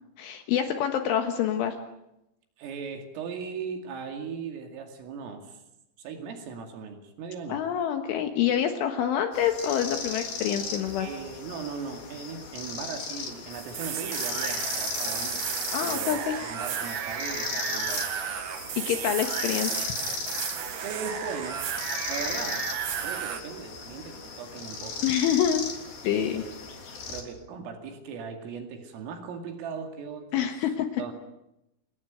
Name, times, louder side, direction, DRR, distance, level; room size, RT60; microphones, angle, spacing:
voice 1, 0.2-1.8 7.5-11.1 15.7-16.4 18.8-20.0 25.0-25.6 26.0-26.4 30.3-30.9, left 9 dB, 70° left, 6 dB, 3.7 m, -26 dB
voice 2, 2.6-5.6 6.0-7.6 11.0-16.2 16.5-18.2 20.8-21.6 22.1-22.6 23.0-25.1 26.1-26.6 27.1-31.1, right 6 dB, 75° right, 5 dB, 4.9 m, -38 dB
sound 1, 9.3-27.2, left 4 dB, 50° left, 5.0 m, -37 dB
sound 2, 13.5-23.4, right 8 dB, 55° right, 2.5 m, -33 dB
28.0 x 19.5 x 9.2 m, 0.86 s
omnidirectional pair, 6.0 m